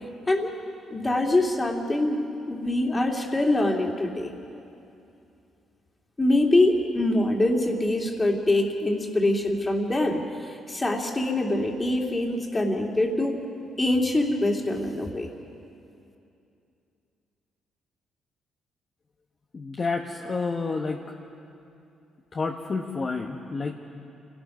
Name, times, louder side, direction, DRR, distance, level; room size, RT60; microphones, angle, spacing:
voice 1, 0.9-2.2 2.5-4.3 6.2-13.4 13.8-15.3, left 1 dB, 20° left, 1 dB, 2.6 m, -24 dB
voice 2, 19.5-21.0 22.3-23.7, left 4 dB, 40° left, 1 dB, 1.2 m, -29 dB
27.0 x 17.5 x 6.0 m, 2.7 s
cardioid pair, 90°, 0 cm